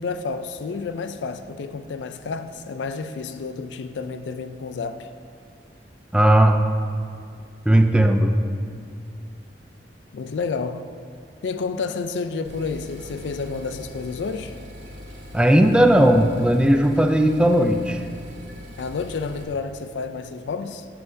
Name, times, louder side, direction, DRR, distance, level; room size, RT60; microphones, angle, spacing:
voice 1, 0.0-5.1 10.1-10.9 11.4-14.6 18.8-20.9, left 4 dB, 75° left, 0.4 m, -30 dB
voice 2, 6.1-6.7 7.7-8.4 15.3-18.0, right 1 dB, 5° right, 0.3 m, -17 dB
sound 1, 12.4-19.4, left 1 dB, 80° right, 1.6 m, -41 dB
15.5 x 5.7 x 2.6 m
head